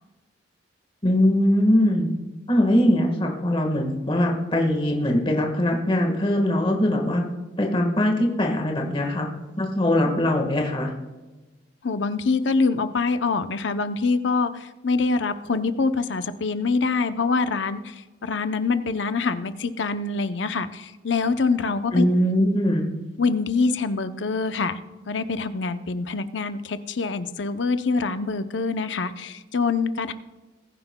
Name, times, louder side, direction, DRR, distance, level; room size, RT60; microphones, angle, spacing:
voice 1, 1.0-2.1 2.5-7.2 7.6-9.3 9.6-10.9 21.9-22.9, left 1 dB, 25° left, 1 dB, 1.5 m, -21 dB
voice 2, 11.8-17.9 18.2-22.0 23.2-24.8 25.1-30.1, left 4 dB, 70° left, 10 dB, 0.7 m, -25 dB
21.0 x 9.9 x 2.2 m, 1.2 s
head